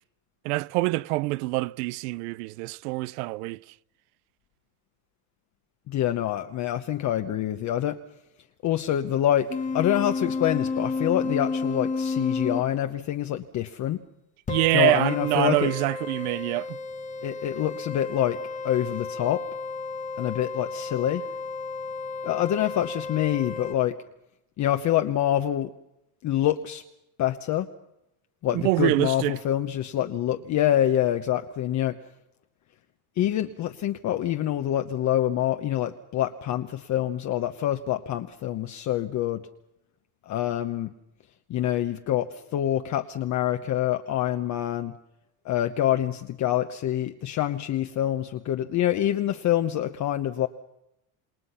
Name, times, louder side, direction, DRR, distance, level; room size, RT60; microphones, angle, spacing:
voice 1, 0.4-3.6 14.5-16.8 28.5-29.4, right 21 dB, 85° right, 0.8 m, -25 dB
voice 2, 5.9-8.0 8.6-9.5 9.7-14.0 14.7-15.7 17.2-18.4 18.6-19.4 20.2-21.3 22.2-24.0 24.6-25.7 26.2-26.8 27.2-27.7 28.4-32.0 33.2-39.4 40.3-40.9 41.5-44.9 45.4-50.5, left 12 dB, 40° left, 1.0 m, -26 dB
sound 1, 9.5-12.7 14.5-23.7, left 4 dB, 15° left, 1.4 m, -32 dB
28.0 x 20.5 x 5.7 m
cardioid pair, 145°, 46 cm